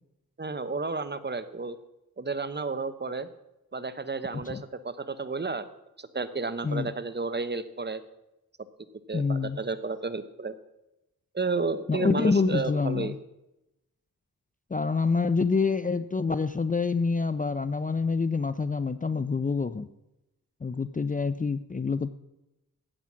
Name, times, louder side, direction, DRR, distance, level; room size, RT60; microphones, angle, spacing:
voice 1, 0.4-1.8 2.2-3.3 3.7-5.7 6.0-8.0 9.1-10.6 11.3-13.1, right 4 dB, 30° right, 13 dB, 1.0 m, -32 dB
voice 2, 9.1-9.6 11.9-13.2 14.7-19.9 20.6-22.1, left 4 dB, 25° left, 14 dB, 0.5 m, -27 dB
14.0 x 8.9 x 6.2 m, 0.91 s
cardioid pair, 75°, 35 cm